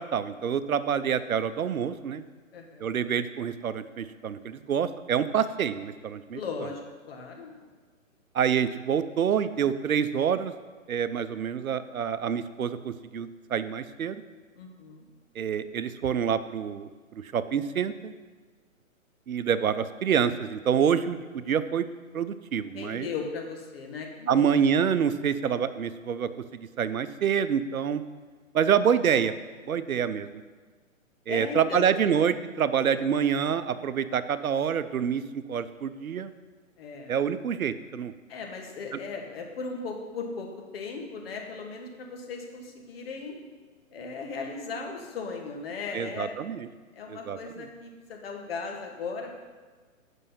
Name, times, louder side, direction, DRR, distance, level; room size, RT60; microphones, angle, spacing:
voice 1, 0.0-2.2 2.8-6.4 8.3-10.5 10.9-14.2 15.4-16.9 17.2-18.1 19.3-21.9 22.1-23.1 24.3-28.0 28.5-29.3 29.7-30.3 31.3-36.3 37.1-38.1 45.9-46.7 47.1-47.6, right 8 dB, 90° right, 13 dB, 0.7 m, -27 dB
voice 2, 2.5-2.8 6.3-7.6 14.5-15.1 22.7-24.6 31.3-32.1 36.8-37.1 38.3-40.5 40.7-43.4 43.9-46.4 46.9-49.3, left 4 dB, 45° left, 2 dB, 1.6 m, -37 dB
8.1 x 5.4 x 5.7 m, 1.4 s
hypercardioid pair, 145°, 41 cm